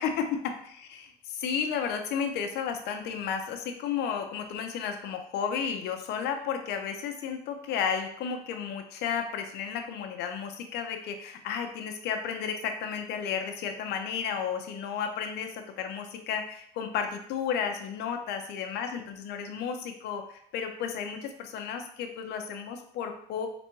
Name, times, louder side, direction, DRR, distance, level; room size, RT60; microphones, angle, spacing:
voice 1, 0.0-23.5, left 7 dB, 80° left, 6 dB, 0.7 m, -33 dB
4.1 x 3.4 x 3.0 m, 0.70 s
cardioid pair, 110°, 17 cm